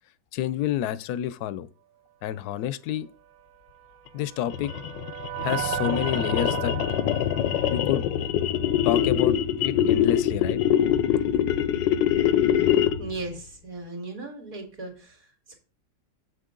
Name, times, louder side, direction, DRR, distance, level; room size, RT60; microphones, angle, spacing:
voice 1, 0.3-1.7 2.2-3.1 4.1-4.7 5.4-6.8 7.7-8.0 8.8-9.4 9.6-10.6, left 11 dB, 70° left, 1.0 m, -29 dB
sound 1, 3.8-9.1, right 10 dB, 65° right, 1.0 m, -36 dB
sound 2, 4.5-13.2, left 10 dB, 90° left, 1.3 m, -24 dB
voice 2, 13.0-15.6, right 2 dB, 50° right, 2.6 m, -37 dB
7.7 x 6.5 x 3.7 m
omnidirectional pair, 1.9 m